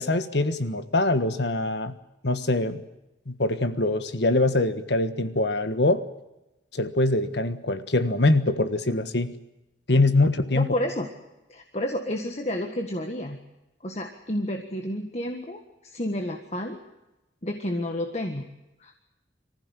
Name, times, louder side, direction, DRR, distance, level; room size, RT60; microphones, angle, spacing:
voice 1, 0.0-1.9 2.2-2.8 3.3-6.0 6.7-9.3 9.9-10.7, left 2 dB, 70° left, 11 dB, 1.5 m, -23 dB
voice 2, 10.6-11.1 11.5-13.4 13.8-16.8 17.4-18.5 18.8-19.0, left 1 dB, 35° left, 4 dB, 1.7 m, -30 dB
24.5 x 15.0 x 10.0 m, 0.95 s
head